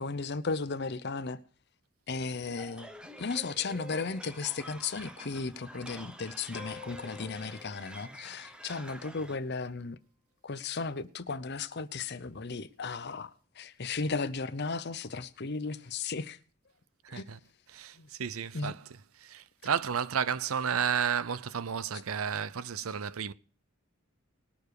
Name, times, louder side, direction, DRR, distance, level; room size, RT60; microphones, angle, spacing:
voice 1, 0.0-1.4 2.1-2.9 3.2-10.0 10.4-16.4 17.1-17.2 18.0-18.1 18.5-18.7, left 4 dB, 50° left, 0.8 m, -35 dB
sound 1, 2.6-9.4, right 1 dB, 5° right, 0.8 m, -48 dB
sound 2, 6.5-9.7, left 6 dB, 85° left, 1.7 m, -51 dB
voice 2, 17.0-17.4 17.7-18.9 19.2-23.3, right 7 dB, 80° right, 0.6 m, -32 dB
20.0 x 7.0 x 4.8 m
head